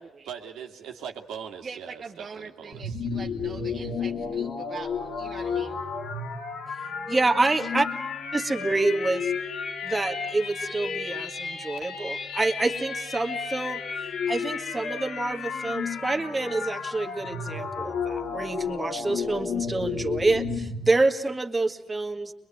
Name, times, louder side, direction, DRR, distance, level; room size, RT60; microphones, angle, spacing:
voice 1, 0.3-3.0, right 7 dB, 85° right, 3 dB, 2.2 m, -40 dB
voice 2, 1.6-5.8, right 5 dB, 40° right, 3 dB, 1.2 m, -42 dB
sound 1, 2.7-20.9, left 5 dB, 60° left, 3.0 m, -32 dB
voice 3, 7.1-7.9 8.3-9.2 9.8-13.8 14.3-22.3, right 2 dB, 20° right, 3 dB, 1.9 m, -27 dB
23.0 x 22.0 x 9.2 m, 0.84 s
cardioid pair, 90°, 0 cm